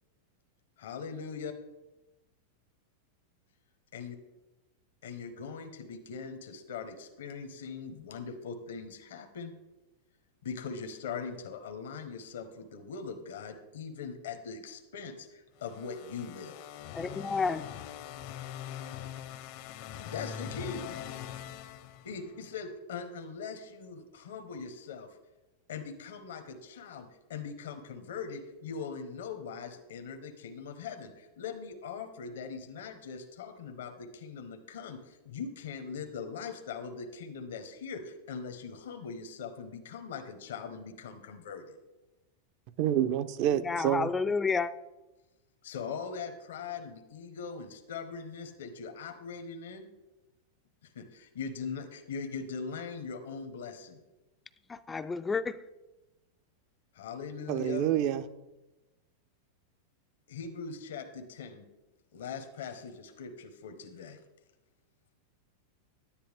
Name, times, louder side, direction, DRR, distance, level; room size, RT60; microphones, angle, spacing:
voice 1, 0.8-1.5 3.9-4.2 5.0-9.5 10.4-16.7 20.0-20.9 22.0-25.2 25.7-41.6 45.6-49.9 50.8-54.0 56.9-57.9 60.3-61.6 62.1-64.2, left 5 dB, 80° left, 7 dB, 1.0 m, -41 dB
sound 1, 15.6-22.5, left 10 dB, 55° left, 0.7 m, -42 dB
voice 2, 16.9-17.7 43.6-44.7 54.7-55.6, left 4 dB, 15° left, 11 dB, 0.3 m, -30 dB
voice 3, 42.8-44.1 57.5-58.2, right 11 dB, 50° right, 12 dB, 0.6 m, -27 dB
10.0 x 10.0 x 3.5 m, 1.1 s
hypercardioid pair, 125°, 0 cm